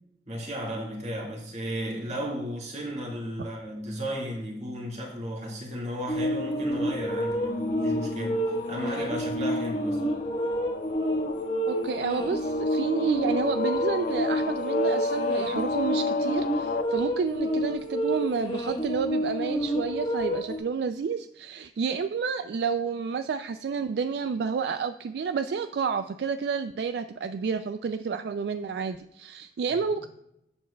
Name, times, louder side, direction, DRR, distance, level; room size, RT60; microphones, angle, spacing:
voice 1, 0.3-10.0, equal, 40° right, 1.9 m, -34 dB
sound 1, 6.1-20.6, equal, 30° left, 1.2 m, -29 dB
sound 2, 6.5-16.8, left 4 dB, 50° left, 0.3 m, -33 dB
voice 2, 11.7-30.1, right 5 dB, 65° right, 0.3 m, -30 dB
10.5 x 7.0 x 2.3 m
head